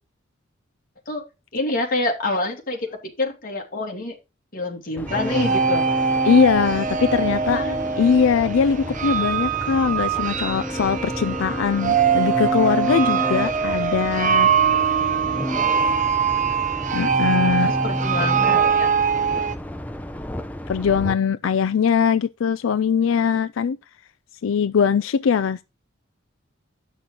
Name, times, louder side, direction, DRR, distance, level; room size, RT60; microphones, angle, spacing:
voice 1, 1.5-4.2 4.5-5.9 7.1-7.8 17.2-18.9, left 2 dB, 45° left, 2.6 m, -27 dB
sound 1, 5.0-21.1, left 1 dB, 10° left, 0.7 m, -30 dB
sound 2, 5.1-19.5, right 7 dB, 40° right, 0.7 m, -23 dB
voice 2, 6.2-7.6 8.0-14.5 16.9-17.7 20.7-23.8 24.4-25.6, left 6 dB, 90° left, 0.4 m, -21 dB
9.0 x 6.1 x 3.9 m
head